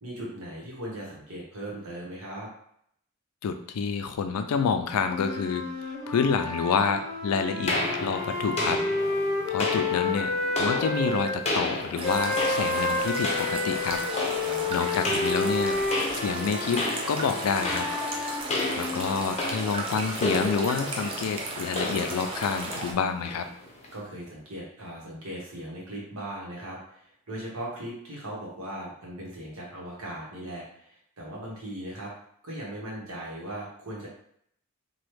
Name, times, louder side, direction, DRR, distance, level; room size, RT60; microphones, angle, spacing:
voice 1, 0.0-2.5 14.4-14.7 23.9-32.1 32.4-34.1, right 1 dB, 70° right, -4 dB, 1.1 m, -38 dB
voice 2, 3.4-8.8 9.5-10.3 10.6-14.0 14.7-15.8 16.1-17.9 18.8-23.5, left 5 dB, 90° left, 8 dB, 0.4 m, -28 dB
sound 1, 5.0-11.3 12.0-19.1, left 3 dB, 5° left, 0.9 m, -30 dB
sound 2, 7.7-24.0, left 2 dB, 30° left, 0.6 m, -33 dB
sound 3, 12.0-22.9, right 2 dB, 25° right, 0.4 m, -35 dB
3.0 x 2.3 x 3.2 m, 0.68 s
head